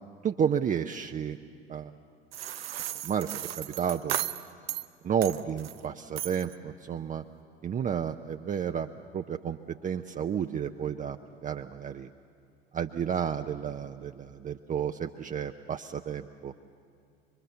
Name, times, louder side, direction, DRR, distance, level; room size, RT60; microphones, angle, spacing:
voice 1, 0.2-1.4 1.7-1.9 2.8-4.2 5.0-7.2 7.6-8.9 9.1-12.1 12.7-16.5, right 8 dB, 25° right, 6 dB, 0.6 m, -31 dB
sound 1, 2.3-4.9 5.2-5.8 6.2-6.5, right 12 dB, 75° right, 0.7 m, -35 dB
23.0 x 23.0 x 6.9 m, 2.3 s
figure-of-eight pair, 65°, 30 cm